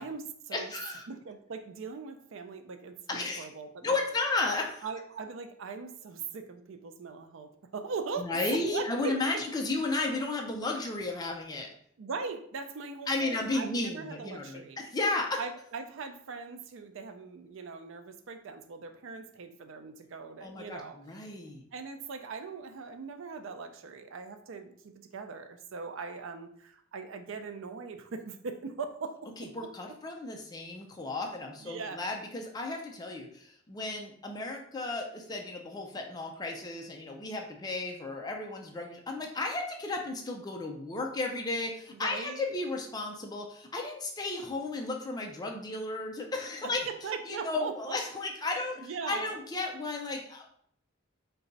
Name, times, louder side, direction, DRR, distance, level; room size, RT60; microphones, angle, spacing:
voice 1, 0.0-0.7 1.1-3.9 4.8-8.3 8.7-9.2 12.0-14.8 15.4-21.0 21.7-29.2 31.6-32.0 41.9-42.5 46.6-48.0 48.5-49.4, right 4 dB, 65° right, 7 dB, 0.5 m, -40 dB
voice 2, 0.5-1.0 3.1-3.4 3.8-4.9 8.2-11.7 13.1-15.4 20.4-21.6 29.4-46.8 47.3-50.6, left 2 dB, 20° left, 1 dB, 0.4 m, -34 dB
4.0 x 2.2 x 3.9 m, 0.65 s
head